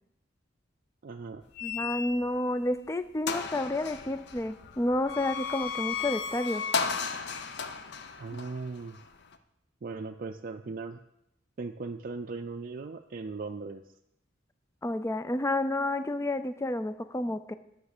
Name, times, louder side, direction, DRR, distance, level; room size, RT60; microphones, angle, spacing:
voice 1, 1.0-1.4 8.2-9.0 9.8-11.0 11.6-13.8, right 4 dB, 45° right, 4 dB, 0.4 m, -38 dB
sound 1, 1.5-2.5 2.9-3.0 3.3-9.4, left 6 dB, 60° left, 0.7 m, -35 dB
voice 2, 1.6-6.6 8.3-8.4 14.8-17.5, left 1 dB, 15° left, 12 dB, 0.4 m, -30 dB
9.5 x 6.5 x 6.7 m, 0.83 s
head